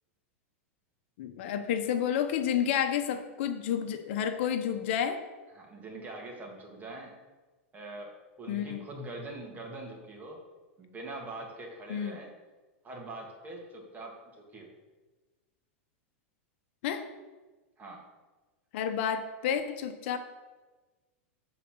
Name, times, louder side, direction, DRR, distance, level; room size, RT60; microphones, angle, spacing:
voice 1, 1.2-5.2 8.5-8.8 11.9-12.2 16.8-17.1 18.7-20.2, left 8 dB, 65° left, 7 dB, 0.8 m, -30 dB
voice 2, 5.5-7.1 7.7-10.4 10.8-12.3 12.8-14.7 17.8-18.0, right 2 dB, 25° right, 0 dB, 2.2 m, -43 dB
8.3 x 4.1 x 6.2 m, 1.2 s
hypercardioid pair, 115°, 7 cm